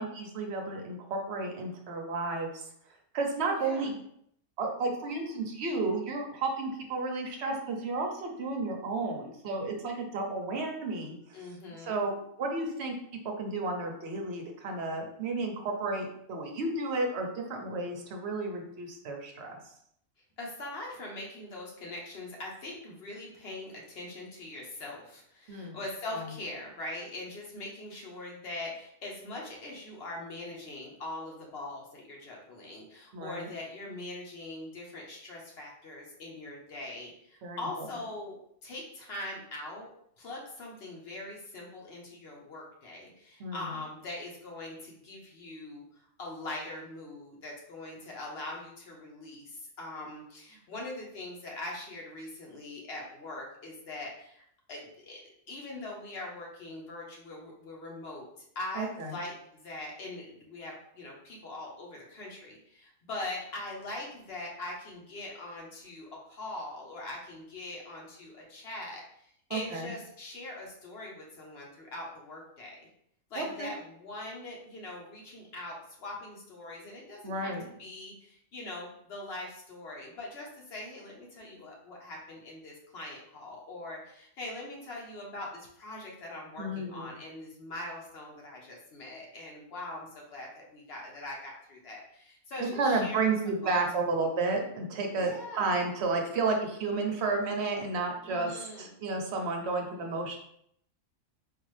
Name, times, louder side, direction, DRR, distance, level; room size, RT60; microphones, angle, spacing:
voice 1, 0.0-2.6 3.1-3.9 4.6-11.1 11.8-12.9 13.4-19.6 25.5-25.8 26.1-26.3 33.1-33.5 37.4-37.9 43.4-43.7 58.8-59.2 69.5-69.9 73.4-73.7 77.2-77.6 86.6-87.2 92.8-100.4, right 3 dB, 55° right, 2 dB, 0.8 m, -32 dB
voice 2, 3.6-3.9 11.3-12.0 20.4-39.9 40.2-45.8 46.2-54.4 54.7-58.3 58.5-72.8 73.3-93.9 95.1-95.7 98.2-98.9, left 2 dB, 50° left, -2 dB, 1.1 m, -42 dB
3.9 x 2.5 x 3.2 m, 0.70 s
omnidirectional pair, 1.5 m